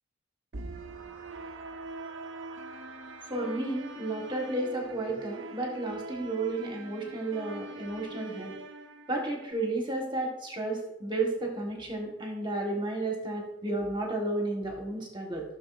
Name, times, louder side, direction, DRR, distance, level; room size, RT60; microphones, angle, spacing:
sound 1, 0.5-9.5, right 2 dB, 80° right, 0.8 m, -43 dB
voice 1, 3.3-8.5 9.1-15.4, right 2 dB, 25° right, 0 dB, 1.5 m, -32 dB
13.5 x 6.7 x 2.6 m, 0.89 s
head